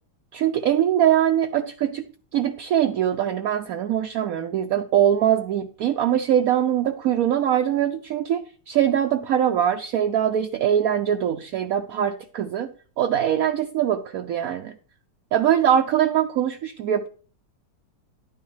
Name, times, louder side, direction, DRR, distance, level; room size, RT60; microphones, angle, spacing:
voice 1, 0.3-2.1 2.3-12.7 13.0-14.7 15.3-17.1, right 10 dB, 65° right, 6 dB, 1.0 m, -22 dB
11.5 x 9.2 x 3.2 m, 0.41 s
omnidirectional pair, 1.8 m